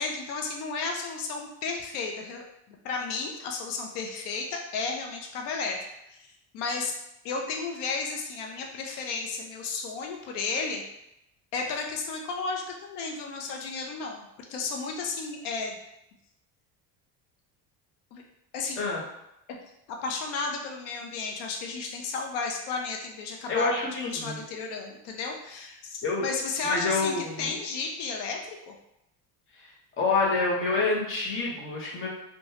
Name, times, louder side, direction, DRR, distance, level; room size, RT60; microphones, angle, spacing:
voice 1, 0.0-5.8 6.1-6.3 6.5-6.9 7.2-10.8 11.5-15.8 18.1-18.2 18.5-18.9 20.0-23.7 24.0-28.7, left 4 dB, 80° left, 1 dB, 0.6 m, -33 dB
voice 2, 23.5-24.4 26.0-26.2 26.6-27.5 30.0-32.1, left 3 dB, 30° left, -4 dB, 0.7 m, -27 dB
3.0 x 2.2 x 2.8 m, 0.84 s
cardioid pair, 145°, 40 cm